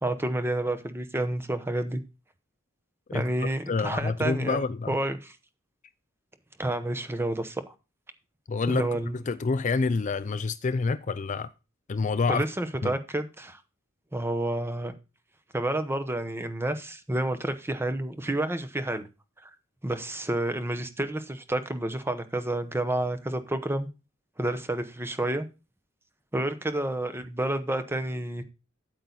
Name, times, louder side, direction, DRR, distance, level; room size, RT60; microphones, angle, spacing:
voice 1, 0.0-2.0 3.1-4.6 4.9-5.3 6.6-7.7 8.7-9.2 12.3-13.6 14.1-14.9 15.5-19.1 19.4-19.5 19.8-23.9 24.4-25.5 26.3-28.4, right 1 dB, 10° right, 0.9 m, -29 dB
voice 2, 3.1-5.0 8.5-8.9 9.1-11.5 11.9-12.4 12.8-12.9, left 4 dB, 40° left, 0.4 m, -28 dB
8.7 x 8.4 x 4.0 m
head